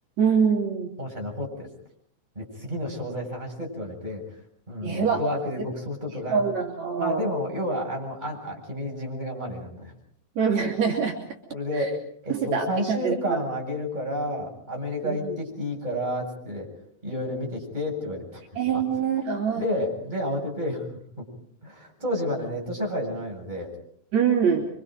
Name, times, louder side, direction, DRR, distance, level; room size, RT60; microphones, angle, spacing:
voice 1, 0.2-0.9 4.8-5.2 5.6-5.7 6.3-7.3 10.4-11.2 11.8-11.9 12.3-13.4 15.0-15.3 18.6-19.6 24.1-24.7, right 6 dB, 65° right, 0 dB, 4.1 m, -24 dB
voice 2, 1.0-1.7 2.4-4.2 4.7-6.4 7.0-9.9 11.5-12.0 12.2-16.7 17.0-18.4 18.7-18.8 19.6-20.9 21.2-21.3 21.6-23.7, left 1 dB, 15° right, -1 dB, 7.6 m, -30 dB
29.0 x 25.0 x 4.7 m, 0.63 s
omnidirectional pair, 3.4 m